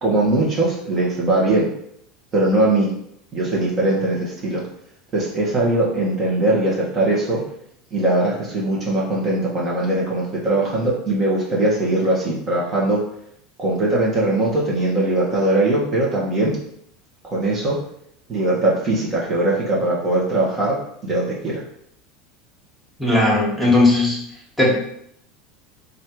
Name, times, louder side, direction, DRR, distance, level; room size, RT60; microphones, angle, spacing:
voice 1, 0.0-1.7 2.3-2.9 3.3-4.6 5.1-7.4 7.9-13.0 13.6-16.6 17.3-17.8 18.3-20.8 21.0-21.6, right 2 dB, 35° right, -4 dB, 1.2 m, -20 dB
voice 2, 23.0-24.2 24.6-24.7, left 2 dB, 5° left, -4 dB, 1.5 m, -16 dB
3.2 x 2.6 x 4.5 m, 0.70 s
hypercardioid pair, 90°, 0 cm